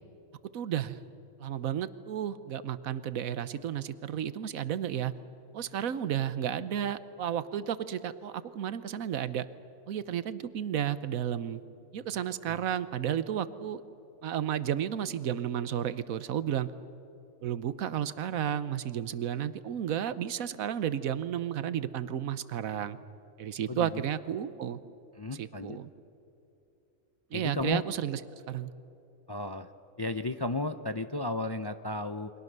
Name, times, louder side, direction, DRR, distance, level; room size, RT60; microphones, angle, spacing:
voice 1, 0.5-1.0 1.4-5.1 5.5-9.5 9.9-11.6 11.9-13.8 14.2-16.7 17.4-23.0 23.4-24.8 25.4-25.9 27.3-28.7, right 9 dB, 85° right, 15 dB, 1.3 m, -32 dB
voice 2, 23.7-24.0 25.2-25.8 27.3-27.8 29.3-29.7 30.0-32.3, left 2 dB, 35° left, 10 dB, 0.4 m, -34 dB
29.0 x 24.0 x 6.7 m, 2.9 s
omnidirectional pair, 1.4 m